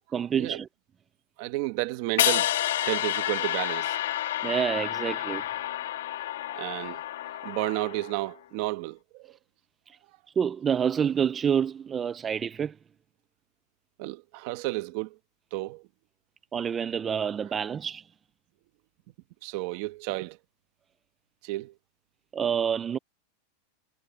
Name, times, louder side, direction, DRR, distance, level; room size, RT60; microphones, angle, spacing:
voice 1, 0.1-0.7 4.4-5.4 9.9-10.0 10.4-12.8 16.5-18.0 22.3-23.0, right 7 dB, 15° right, 0.4 m, -27 dB
voice 2, 1.4-2.5 2.8-4.0 6.5-9.3 14.0-15.2 15.5-15.8 19.4-20.4 21.4-21.7, right 19 dB, 40° right, 1.3 m, -32 dB
sound 1, 2.2-8.3, left 13 dB, 80° left, 1.9 m, -29 dB
supercardioid pair, 175°, 0 cm